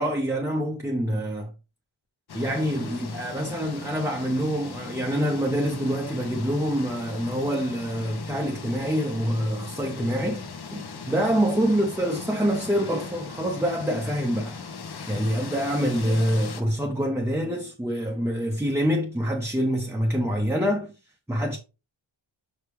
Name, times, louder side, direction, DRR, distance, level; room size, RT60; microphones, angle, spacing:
voice 1, 0.0-1.5 2.3-10.4 10.7-14.6 15.1-20.9 21.3-21.6, equal, 5° right, 0.6 m, -26 dB
sound 1, 2.3-16.6, left 5 dB, 55° left, 0.9 m, -39 dB
5.8 x 5.1 x 3.1 m
wide cardioid pair, 135°, 46 cm